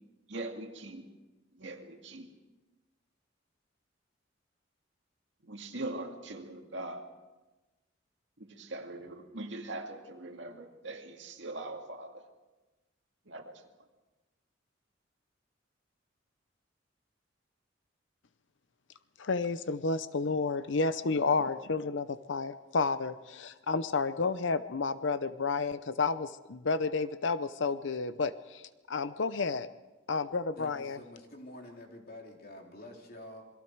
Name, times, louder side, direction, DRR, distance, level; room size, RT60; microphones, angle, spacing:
voice 1, 0.3-1.1 1.5-2.3 5.4-7.0 8.4-12.2 13.3-13.5, right 2 dB, 70° right, 2.2 m, -41 dB
voice 2, 19.2-28.6 28.9-29.7 30.1-31.0, left 4 dB, 70° left, 0.7 m, -31 dB
voice 3, 30.5-33.4, left 1 dB, 50° left, 3.2 m, -48 dB
27.5 x 22.0 x 4.7 m
head